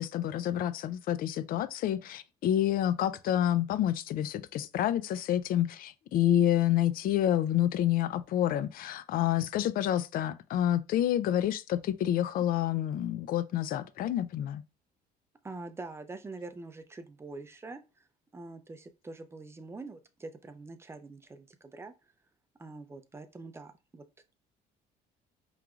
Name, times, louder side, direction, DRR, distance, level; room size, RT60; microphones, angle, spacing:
voice 1, 0.0-14.6, left 11 dB, 60° left, 0.4 m, -28 dB
voice 2, 15.4-18.0 18.3-21.9 22.6-24.0, right 3 dB, 15° right, 0.5 m, -44 dB
4.9 x 3.1 x 2.4 m
cardioid pair, 110°, 17 cm